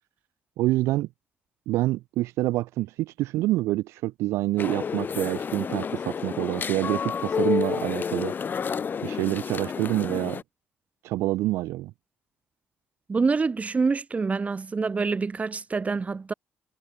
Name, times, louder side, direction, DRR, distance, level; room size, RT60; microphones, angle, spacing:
voice 1, 0.6-1.1 1.7-8.3 9.0-10.4 11.0-11.9, right 17 dB, 90° right, 2.2 m, -27 dB
sound 1, 4.6-10.4, left 6 dB, 45° left, 1.7 m, -30 dB
voice 2, 13.1-16.3, right 4 dB, 30° right, 1.4 m, -26 dB
cardioid pair, 85°, 5 cm